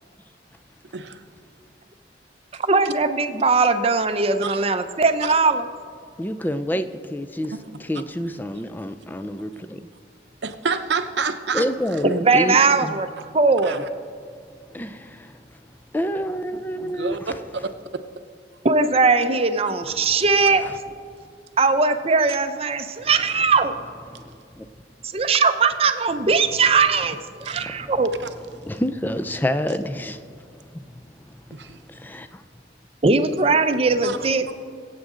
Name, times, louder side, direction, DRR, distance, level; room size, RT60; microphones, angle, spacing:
voice 1, 0.9-1.2 2.8-2.9 4.4-4.6 5.2-5.4 7.5-7.7 10.4-11.7 13.6-13.9 16.7-17.3 27.4-27.6 31.5-31.8 34.0-34.5, right 5 dB, 70° right, 0.8 m, -29 dB
voice 2, 2.5-5.7 12.0-13.1 13.3-13.8 18.6-20.6 21.6-23.7 25.1-28.1 33.0-34.5, right 4 dB, 35° right, 0.6 m, -19 dB
voice 3, 6.2-7.5 7.8-9.9 11.5-13.0 14.7-15.6 15.9-17.3 20.6-20.7 24.1-24.7 27.6-27.9 28.5-32.4, equal, 10° left, 0.4 m, -29 dB
22.5 x 8.4 x 3.8 m
head